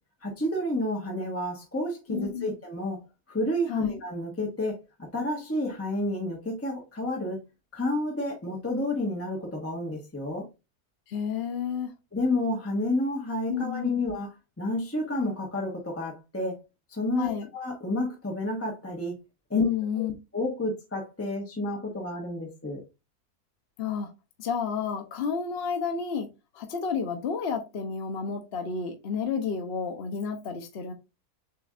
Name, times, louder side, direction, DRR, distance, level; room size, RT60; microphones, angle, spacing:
voice 1, 0.2-3.0 3.3-7.4 7.7-10.4 12.1-14.3 14.6-16.5 16.9-19.2 19.5-19.7 20.0-20.1 20.3-22.8, left 1 dB, 10° left, 1.2 m, -30 dB
voice 2, 2.1-2.5 3.7-4.0 11.1-11.9 13.5-13.9 17.2-17.5 19.5-20.1 23.8-24.1 24.4-26.3 26.5-30.9, left 6 dB, 50° left, 0.9 m, -31 dB
6.9 x 3.2 x 2.4 m
omnidirectional pair, 1.7 m